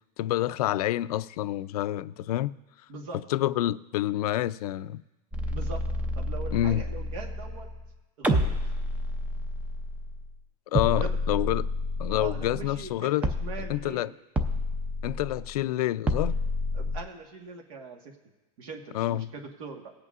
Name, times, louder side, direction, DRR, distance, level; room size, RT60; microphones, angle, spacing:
voice 1, 0.2-2.5 3.3-5.0 6.5-6.8 10.7-11.7 12.0-13.3 13.7-14.1 15.0-16.4 18.9-19.3, left 14 dB, 90° left, 0.4 m, -28 dB
sound 1, 5.3-7.9 8.2-10.3 10.7-13.0 13.2-13.9 14.4-15.6 16.1-17.0, left 1 dB, 5° right, 0.5 m, -30 dB
voice 2, 5.5-5.8 6.1-7.7 8.2-8.5 11.0-11.2 12.2-14.1 16.7-18.1 18.6-19.9, right 4 dB, 65° right, 1.5 m, -41 dB
20.0 x 8.1 x 2.5 m
supercardioid pair, 165°, 19 cm